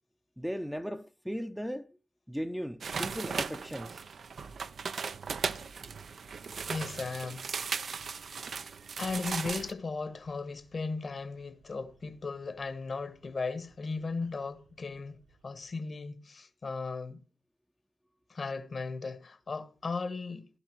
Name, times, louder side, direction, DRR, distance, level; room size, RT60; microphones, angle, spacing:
voice 1, 0.4-1.9 2.3-4.0, equal, ahead, 0.7 m, -37 dB
sound 1, 2.8-9.7, right 5 dB, 60° right, 0.6 m, -37 dB
voice 2, 6.7-7.5 9.0-17.2 18.3-20.5, left 4 dB, 50° left, 1.3 m, -36 dB
sound 2, 7.4-15.7, right 4 dB, 80° right, 6.0 m, -64 dB
15.5 x 12.0 x 3.1 m
cardioid pair, 65°, 0 cm